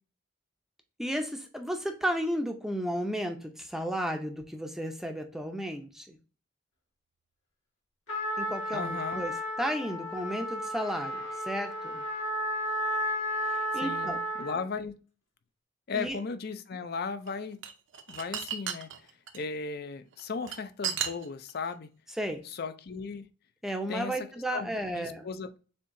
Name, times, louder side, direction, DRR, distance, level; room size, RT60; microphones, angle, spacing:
voice 1, 1.0-6.2 8.4-9.3 9.6-12.0 13.5-14.2 15.9-16.2 22.2-22.4 23.6-25.3, equal, ahead, 4 dB, 0.5 m, -33 dB
Trumpet, 8.1-14.6, equal, 70° left, 2.0 m, -33 dB
voice 2, 8.7-9.2 13.7-15.0 15.9-17.6 18.1-19.1 19.3-21.9 22.4-23.3 23.9-24.3 24.5-25.6, left 5 dB, 50° left, 10 dB, 0.5 m, -36 dB
sound 1, 17.3-19.4 20.1-21.7, right 8 dB, 60° right, 0.6 m, -34 dB
6.8 x 2.7 x 2.6 m, 0.36 s
head